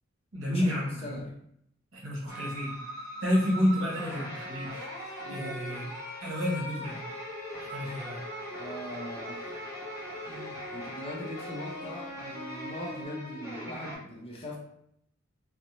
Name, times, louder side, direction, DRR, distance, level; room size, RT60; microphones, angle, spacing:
voice 1, 0.3-1.2 1.9-2.7 3.2-5.8 6.2-7.0 7.6-8.2, left 1 dB, 65° right, -4 dB, 1.0 m, -30 dB
voice 2, 1.0-1.3 5.2-5.6 8.6-9.7 10.2-14.6, equal, 25° left, -3 dB, 0.5 m, -41 dB
Afternoon guitar doodle, 2.3-14.0, equal, 10° right, 0.8 m, -40 dB
sound 1, 4.7-13.1, left 5 dB, 85° left, 0.7 m, -48 dB
2.6 x 2.1 x 2.9 m, 0.73 s
head